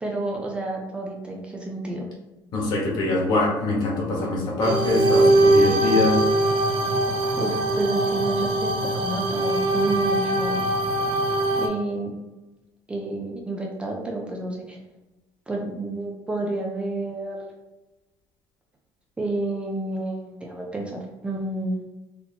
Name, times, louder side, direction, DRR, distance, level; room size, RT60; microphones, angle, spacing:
voice 1, 0.0-2.1 7.4-10.6 11.6-12.2 12.9-14.8 15.5-17.5 19.2-21.8, right 2 dB, 10° right, 0 dB, 0.4 m, -30 dB
voice 2, 2.5-6.2, left 2 dB, 50° left, -2 dB, 1.3 m, -23 dB
sound 1, 4.6-11.7, right 1 dB, 80° right, 0.7 m, -21 dB
4.2 x 2.8 x 2.8 m, 1.1 s
cardioid pair, 155°, 9 cm